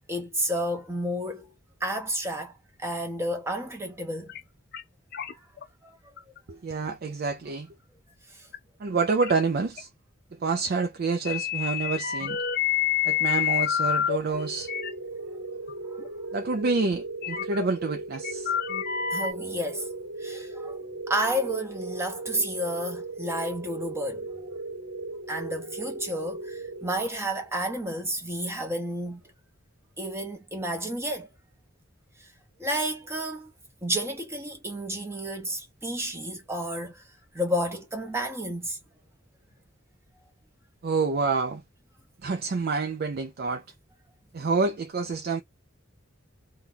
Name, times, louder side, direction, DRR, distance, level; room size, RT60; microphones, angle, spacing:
voice 1, 0.1-1.5 1.8-4.3 5.3-5.4 5.8-6.0 8.3-8.5 15.9-16.0 19.1-19.9 20.2-20.8 21.1-24.5 25.3-29.2 30.0-31.3 32.2-32.3 32.6-33.5 33.8-37.0 37.3-38.8, equal, 15° right, 0.7 m, -31 dB
sound 1, 4.3-4.4 4.7-4.8 5.1-5.6 6.2-6.4 6.9-7.0 8.5-8.6 9.0-9.3 9.8-9.9 11.2-14.2 14.6-14.9 15.7-15.8 16.0-16.1 17.2-17.7 18.1-19.3, left 10 dB, 50° left, 0.4 m, -28 dB
voice 2, 6.5-7.7 8.8-9.9 10.3-12.4 13.0-14.7 16.3-18.5 19.2-19.3 40.8-41.6 42.2-43.6 44.3-45.4, right 4 dB, 50° right, 0.4 m, -28 dB
sound 2, 14.3-27.5, right 2 dB, 65° right, 1.2 m, -37 dB
2.9 x 2.2 x 3.8 m
head